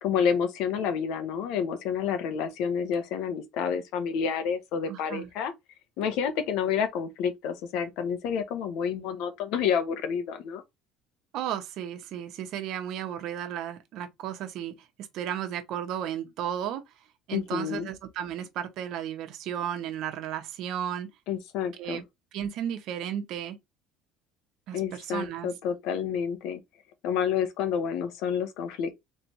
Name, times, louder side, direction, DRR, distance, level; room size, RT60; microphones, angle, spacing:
voice 1, 0.0-5.5 6.0-10.6 17.3-17.9 21.3-22.0 24.7-26.6 27.0-28.9, left 7 dB, 75° left, 1.0 m, -29 dB
voice 2, 4.9-5.3 11.3-14.9 15.1-16.8 17.3-21.1 21.8-22.0 22.3-23.6 24.7-25.5, right 10 dB, 65° right, 1.0 m, -34 dB
3.9 x 3.3 x 3.0 m
cardioid pair, 115°, 0 cm